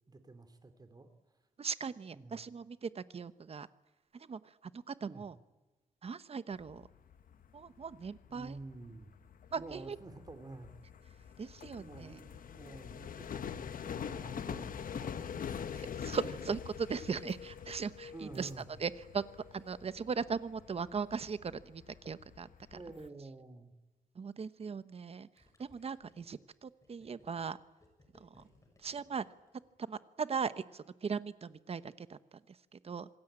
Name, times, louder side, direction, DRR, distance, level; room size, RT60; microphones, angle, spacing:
voice 1, 0.1-1.1 2.1-2.5 5.1-5.2 8.3-9.1 9.6-10.7 11.8-15.7 18.1-18.6 22.7-23.7, right 3 dB, 25° right, 9 dB, 2.8 m, -50 dB
voice 2, 1.6-3.7 4.1-5.4 6.0-6.9 7.5-8.6 9.5-10.0 11.4-12.2 15.9-18.5 18.8-19.2 19.5-22.8 24.1-25.3 25.6-27.6 28.1-28.5 28.8-29.2 29.9-33.1, right 5 dB, 45° right, 14 dB, 1.0 m, -39 dB
sound 1, 6.5-23.1, left 8 dB, 75° left, 1.3 m, -45 dB
Gurgling, 25.4-30.0, left 2 dB, 20° left, 6.8 m, -66 dB
27.0 x 20.0 x 8.9 m, 1.2 s
wide cardioid pair, 125°, 15 cm